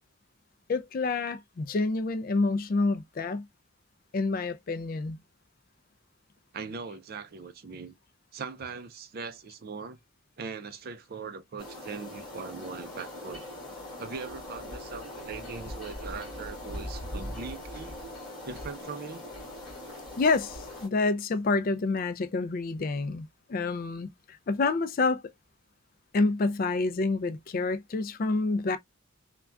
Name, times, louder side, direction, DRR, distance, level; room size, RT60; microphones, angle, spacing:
voice 1, 0.7-3.5 4.1-5.2 20.2-25.2 26.1-28.8, left 3 dB, 40° left, 0.3 m, -28 dB
voice 2, 6.5-8.0 8.3-10.0 10.4-13.5 14.0-18.0 18.4-19.2, right 5 dB, 40° right, 0.4 m, -40 dB
sound 1, 11.6-20.9, left 1 dB, 5° left, 1.7 m, -41 dB
3.4 x 2.2 x 2.4 m
head